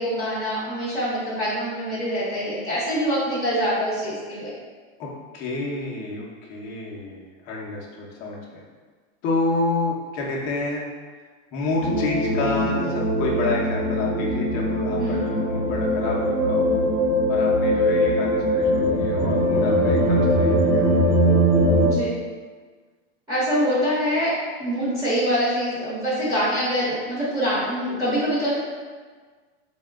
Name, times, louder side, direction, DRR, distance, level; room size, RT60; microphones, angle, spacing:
voice 1, 0.0-4.5 14.9-15.2 21.8-22.1 23.3-24.3 24.6-28.6, equal, 10° right, -11 dB, 0.8 m, -24 dB
voice 2, 5.0-8.6 9.2-10.8 11.5-16.6 17.3-20.9, left 3 dB, 25° left, -3 dB, 0.4 m, -29 dB
sound 1, 11.8-21.9, equal, 40° right, 0.7 m, -21 dB
4.0 x 2.2 x 3.4 m, 1.5 s
supercardioid pair, 165°, 35 cm